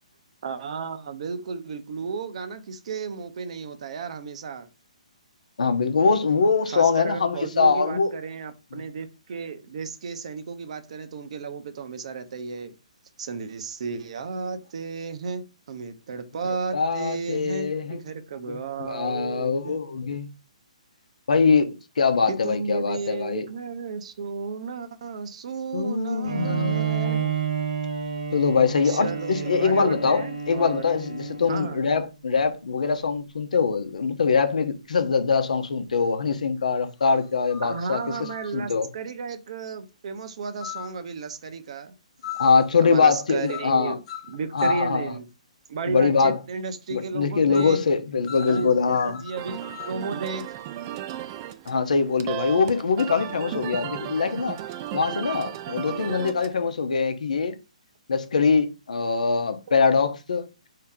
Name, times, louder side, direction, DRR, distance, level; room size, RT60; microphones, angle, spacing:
voice 1, 0.4-4.7 6.7-12.7 13.2-19.8 22.3-27.2 28.8-30.9 31.5-31.9 37.6-41.9 42.8-44.0 44.3-45.3 45.7-47.8 48.5-50.5, right 5 dB, 55° right, 0.7 m, -33 dB
voice 2, 5.6-8.1 8.7-8.8 16.7-18.1 18.5-20.3 21.3-21.7 22.0-23.5 25.7-27.4 28.3-38.9 42.4-44.0 44.5-45.1 45.9-46.4 46.9-49.2 51.7-54.6 54.9-57.6 58.1-60.5, left 5 dB, 75° left, 0.8 m, -23 dB
Bowed string instrument, 26.2-31.9, right 7 dB, 70° right, 1.4 m, -30 dB
sound 1, 36.0-36.1 37.0-38.6 40.6-41.0 42.2-42.8 43.4-43.8 44.1-44.9 47.5-47.8 48.3-50.0, left 10 dB, 45° left, 0.6 m, -39 dB
sound 2, 49.4-56.6, right 12 dB, 35° right, 0.4 m, -35 dB
4.5 x 2.8 x 3.6 m
hypercardioid pair, 140°, 4 cm